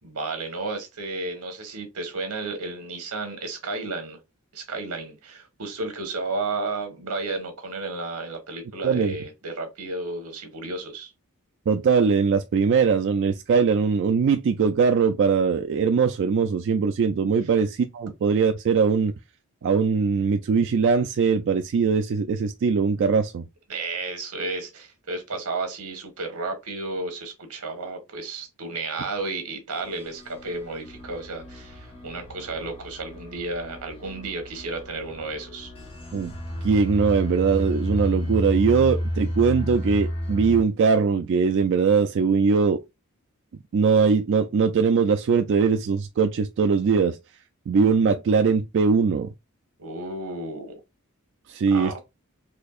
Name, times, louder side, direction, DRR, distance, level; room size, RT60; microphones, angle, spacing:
voice 1, 0.0-4.2 4.5-11.1 17.4-17.5 23.7-35.7 49.8-50.8 51.7-52.0, right 3 dB, 85° right, 1.3 m, -32 dB
voice 2, 8.8-9.1 11.7-19.1 19.6-23.5 36.1-36.4 36.6-42.8 43.7-47.2 47.7-49.3 51.5-52.0, right 5 dB, 55° right, 0.3 m, -21 dB
sound 1, 29.7-40.6, equal, 25° left, 0.8 m, -32 dB
4.3 x 2.7 x 2.3 m
head